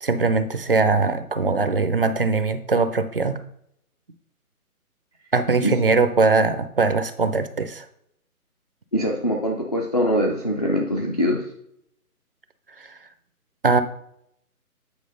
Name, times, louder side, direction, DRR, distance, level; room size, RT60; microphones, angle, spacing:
voice 1, 0.0-3.4 5.3-7.9 13.6-13.8, right 4 dB, 40° right, 10 dB, 0.5 m, -21 dB
voice 2, 8.9-11.4, equal, 25° left, -1 dB, 0.5 m, -23 dB
8.7 x 4.6 x 3.9 m, 0.73 s
figure-of-eight pair, 150°, 45 cm